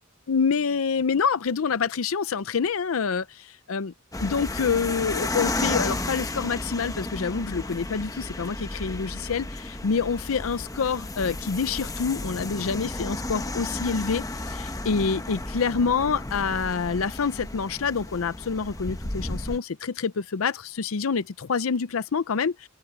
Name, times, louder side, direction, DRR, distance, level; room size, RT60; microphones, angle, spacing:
voice 1, 0.3-3.9 4.2-22.7, left 5 dB, 80° left, 0.6 m, -27 dB
sound 1, 4.1-19.6, left 2 dB, 15° left, 1.0 m, -33 dB
open air
head